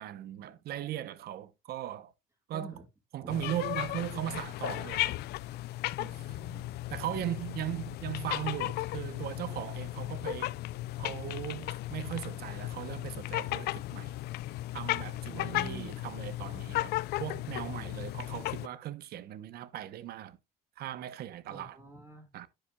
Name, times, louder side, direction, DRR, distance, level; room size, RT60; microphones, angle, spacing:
voice 1, 0.0-2.1 2.5-2.8 3.1-5.2 6.0-6.3 6.9-10.5 11.0-14.2 14.7-20.4 20.8-21.8 22.3-22.5, right 12 dB, 65° right, 0.9 m, -38 dB
voice 2, 2.5-2.8 3.2-3.4 6.1-6.8 15.3-16.0 21.5-22.3, right 2 dB, 15° right, 1.8 m, -47 dB
sound 1, 3.3-18.7, left 16 dB, 75° left, 0.4 m, -35 dB
10.0 x 8.8 x 2.3 m
cardioid pair, 110°, 17 cm